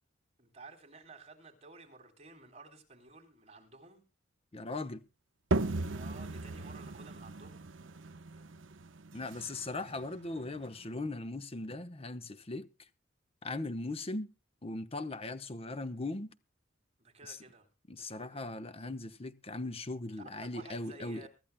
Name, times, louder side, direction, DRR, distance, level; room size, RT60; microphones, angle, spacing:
voice 1, 0.4-4.0 5.9-7.6 17.0-18.5 20.2-21.3, right 3 dB, 35° right, 3.7 m, -54 dB
voice 2, 4.5-5.0 9.1-12.7 13.4-14.3 14.6-16.3 17.3-17.4 17.9-21.3, left 2 dB, 30° left, 1.0 m, -39 dB
sound 1, 5.5-11.0, right 2 dB, 70° right, 0.9 m, -37 dB
24.0 x 13.5 x 2.2 m
head